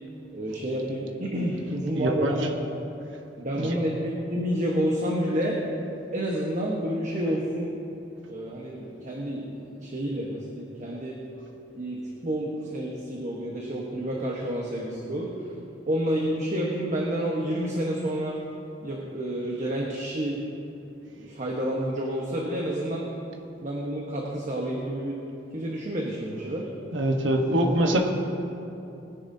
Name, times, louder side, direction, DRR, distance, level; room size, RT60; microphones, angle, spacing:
voice 1, 0.3-2.5 3.4-5.6 6.1-7.7 8.3-11.2 11.7-15.5 15.9-18.4 18.8-20.4 21.1-23.1 23.6-25.2 25.5-26.7, equal, 40° right, -2 dB, 1.2 m, -29 dB
voice 2, 1.9-2.3 3.6-3.7 26.9-28.1, right 1 dB, 70° right, 3 dB, 1.2 m, -23 dB
20.0 x 10.5 x 2.8 m, 2.8 s
head